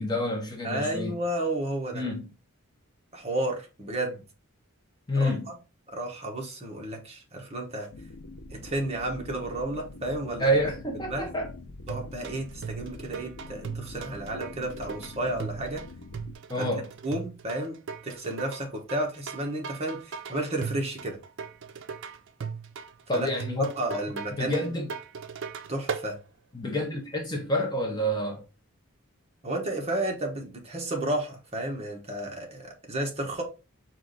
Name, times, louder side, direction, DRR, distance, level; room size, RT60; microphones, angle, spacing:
voice 1, 0.0-1.1 1.9-2.3 5.1-5.5 10.4-11.5 16.5-16.8 23.1-23.7 24.4-24.9 26.5-28.4, equal, 20° left, 0.7 m, -28 dB
voice 2, 0.6-2.0 3.1-4.2 5.1-5.6 5.9-7.9 8.5-10.6 10.9-11.3 11.9-15.9 16.6-16.7 17.0-21.2 23.1-23.3 23.6-24.7 25.7-26.2 29.4-33.4, right 1 dB, 30° right, 1.1 m, -32 dB
sound 1, 7.9-16.3, left 2 dB, 80° left, 0.6 m, -44 dB
sound 2, 11.9-26.1, right 6 dB, 55° right, 0.5 m, -38 dB
4.7 x 2.5 x 3.9 m
head